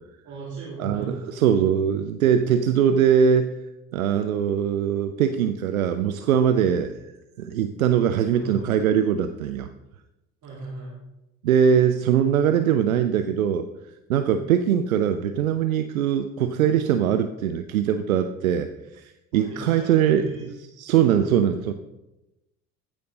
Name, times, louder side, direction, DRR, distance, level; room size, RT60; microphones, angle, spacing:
voice 1, 0.2-1.4 8.3-8.8 10.4-11.0 19.3-20.5, right 3 dB, 45° right, -7 dB, 2.9 m, -37 dB
voice 2, 0.8-3.6 3.9-6.9 7.4-9.7 11.4-13.7 14.1-18.7 18.9-20.3 20.8-21.7, right 8 dB, 75° right, 9 dB, 0.5 m, -21 dB
15.0 x 5.1 x 3.8 m, 0.96 s
figure-of-eight pair, 50°, 42 cm